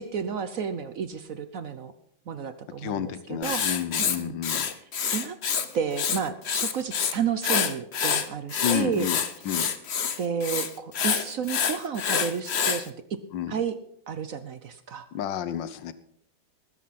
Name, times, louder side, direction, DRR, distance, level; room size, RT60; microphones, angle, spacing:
voice 1, 0.0-1.9 2.3-3.6 4.2-4.4 5.1-5.4 5.7-9.1 10.2-12.9 13.5-13.7 14.1-15.1, right 7 dB, 60° right, 11 dB, 0.9 m, -31 dB
voice 2, 2.8-4.7 8.6-9.2 9.4-9.7 13.3-13.6 15.1-15.9, left 9 dB, 70° left, 14 dB, 1.5 m, -30 dB
Writing, 3.4-5.7 5.9-7.1 7.4-12.8, left 7 dB, 45° left, 0.8 m, -27 dB
19.5 x 10.5 x 4.2 m, 0.69 s
omnidirectional pair, 2.2 m